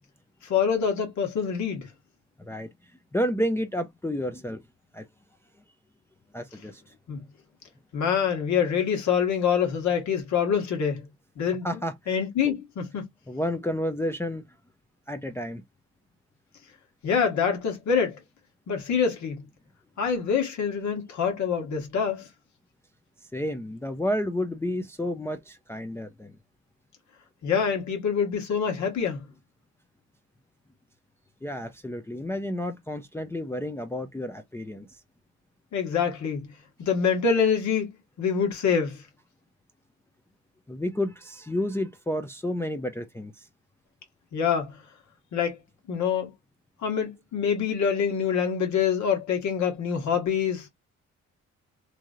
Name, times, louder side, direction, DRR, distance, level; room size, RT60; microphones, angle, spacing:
voice 1, 0.4-1.9 7.1-7.2 7.9-11.1 11.4-11.8 12.1-13.0 17.0-18.2 18.7-19.4 20.0-22.3 27.4-29.2 35.7-36.5 36.8-37.9 38.2-39.0 44.3-44.8 45.3-45.6 45.9-46.3 46.8-50.7, left 7 dB, 70° left, 1.5 m, -25 dB
voice 2, 2.4-2.7 3.1-4.6 4.9-5.1 6.3-6.9 11.6-12.1 12.4-12.5 13.3-14.4 15.1-15.6 23.3-26.3 31.4-34.9 40.7-43.5, equal, 10° left, 0.4 m, -31 dB
3.0 x 2.7 x 2.4 m
cardioid pair, 90°, 30 cm